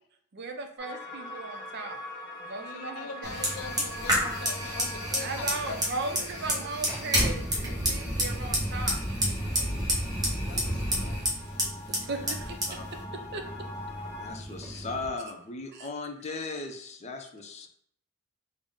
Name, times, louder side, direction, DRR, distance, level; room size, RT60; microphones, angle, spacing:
voice 1, 0.3-2.0 2.5-3.4 5.2-9.0 12.1-13.0 13.3-13.4 14.7-14.8 15.7-15.9, right 3 dB, 50° right, 5 dB, 0.5 m, -37 dB
sound 1, 0.8-14.3, left 2 dB, 5° left, 1.3 m, -44 dB
voice 2, 2.6-5.8 6.2-6.7 10.5-11.3, left 4 dB, 85° left, 6 dB, 0.5 m, -43 dB
Fire, 3.2-15.1, equal, 20° right, 0.9 m, -30 dB
voice 3, 11.9-12.2 12.7-12.9 14.2-17.7, left 3 dB, 30° left, 4 dB, 0.4 m, -38 dB
3.7 x 2.0 x 3.6 m, 0.67 s
head